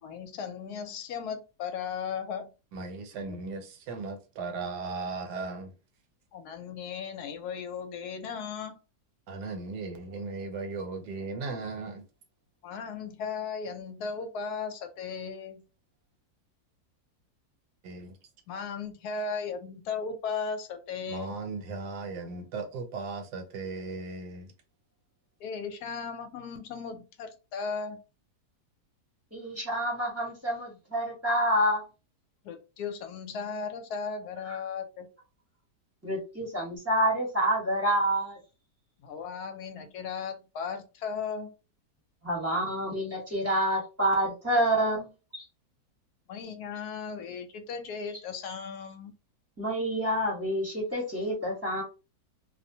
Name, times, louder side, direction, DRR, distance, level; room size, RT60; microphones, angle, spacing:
voice 1, 0.0-2.5 6.3-8.7 12.6-15.6 18.5-21.4 25.4-28.0 32.4-35.1 39.0-41.5 46.3-49.1, left 5 dB, 75° left, 1.0 m, -36 dB
voice 2, 2.7-5.7 9.3-12.0 17.8-18.2 21.1-24.5, right 3 dB, 80° right, 1.2 m, -37 dB
voice 3, 29.3-31.8 34.5-34.6 36.0-38.4 42.2-45.4 49.6-51.8, right 1 dB, 10° right, 0.7 m, -28 dB
2.7 x 2.1 x 2.7 m
omnidirectional pair, 1.8 m